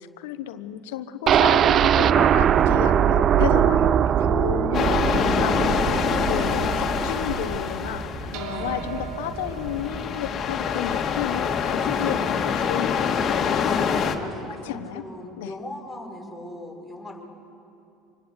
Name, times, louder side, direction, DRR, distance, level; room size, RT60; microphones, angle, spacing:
voice 1, 0.2-12.2 12.5-13.1 14.6-15.0 15.4-15.5, left 11 dB, 75° left, 12 dB, 0.9 m, -32 dB
sound 1, 1.3-9.1 9.5-9.6 9.9-10.0, right 9 dB, 45° right, 0.5 m, -21 dB
sound 2, 4.7-14.2, left 6 dB, 40° left, 2.2 m, -25 dB
sound 3, 8.3-13.0, right 9 dB, 65° right, 1.8 m, -40 dB
voice 2, 8.5-8.8 11.8-12.4 13.6-17.3, left 1 dB, ahead, -3 dB, 5.8 m, -38 dB
25.5 x 21.0 x 8.2 m, 2.7 s
hypercardioid pair, 80°, 0 cm